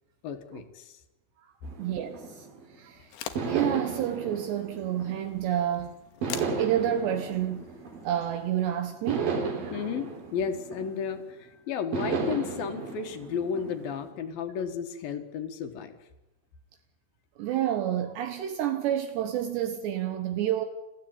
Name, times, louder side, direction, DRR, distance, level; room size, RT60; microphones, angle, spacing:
voice 1, 0.2-1.0 9.7-16.0, left 7 dB, 60° left, 2.9 m, -33 dB
sound 1, 1.6-2.8 3.3-5.6 6.2-8.5 9.1-11.3 11.9-14.1, right 5 dB, 55° right, 4.7 m, -34 dB
voice 2, 1.8-2.4 2.8-3.1 3.5-6.0 6.6-7.7 8.0-9.8 17.4-20.7, right 11 dB, 75° right, 3.2 m, -29 dB
sound 2, 3.0-9.4, left 10 dB, 80° left, 3.7 m, -46 dB
29.0 x 15.0 x 8.9 m
omnidirectional pair, 5.2 m